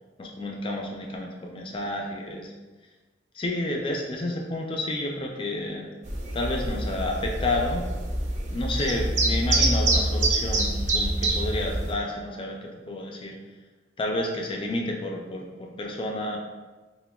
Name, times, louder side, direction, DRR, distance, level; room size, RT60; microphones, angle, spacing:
voice 1, 0.2-2.5 3.3-5.9 6.3-7.8 8.5-12.6 12.9-13.4 14.0-16.4, left 1 dB, 30° left, 0 dB, 0.3 m, -30 dB
sound 1, 6.1-11.9, right 1 dB, 40° right, 0.5 m, -26 dB
5.7 x 2.1 x 2.2 m, 1.3 s
head